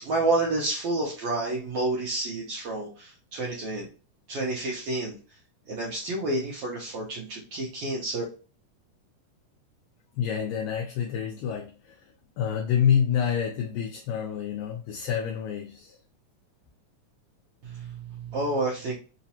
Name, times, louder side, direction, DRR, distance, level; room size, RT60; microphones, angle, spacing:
voice 1, 0.0-3.9 4.3-5.2 5.7-8.2 17.6-18.9, right 2 dB, 80° right, -3 dB, 1.3 m, -29 dB
voice 2, 10.2-16.0, left 8 dB, 80° left, 0 dB, 1.8 m, -28 dB
4.9 x 2.0 x 2.7 m, 0.36 s
omnidirectional pair, 3.6 m